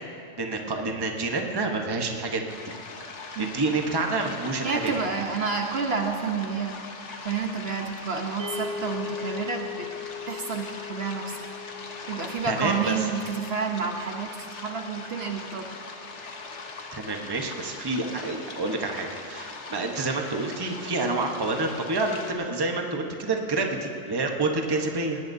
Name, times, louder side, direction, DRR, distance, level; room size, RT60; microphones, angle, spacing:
voice 1, 0.4-2.8 3.4-4.9 12.4-13.1 16.9-25.2, right 3 dB, 20° right, 2 dB, 1.0 m, -28 dB
sound 1, 2.5-22.3, left 3 dB, 65° left, 1.4 m, -41 dB
voice 2, 4.6-6.8 7.2-9.9 10.3-11.5 12.1-15.7, right 5 dB, 55° right, 3 dB, 1.1 m, -29 dB
sound 2, 8.4-18.7, left 5 dB, 85° right, 1.5 m, -41 dB
19.5 x 18.0 x 2.7 m, 2.8 s
omnidirectional pair, 1.3 m